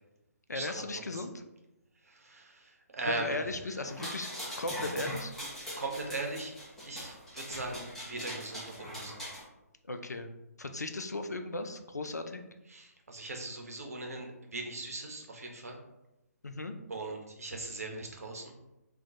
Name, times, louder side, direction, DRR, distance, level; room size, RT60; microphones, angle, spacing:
voice 1, 0.5-1.3 3.1-4.3 4.6-5.3 9.8-10.3 10.6-12.4 16.4-16.7, left 2 dB, 80° left, 7 dB, 0.4 m, -36 dB
voice 2, 2.0-3.7 5.8-6.5 6.8-9.3 12.7-15.8 16.9-18.5, right 2 dB, 60° right, 2 dB, 0.7 m, -39 dB
sound 1, 3.9-9.4, equal, 5° left, 0.6 m, -41 dB
2.3 x 2.2 x 3.8 m, 0.93 s
figure-of-eight pair, 140°, 9 cm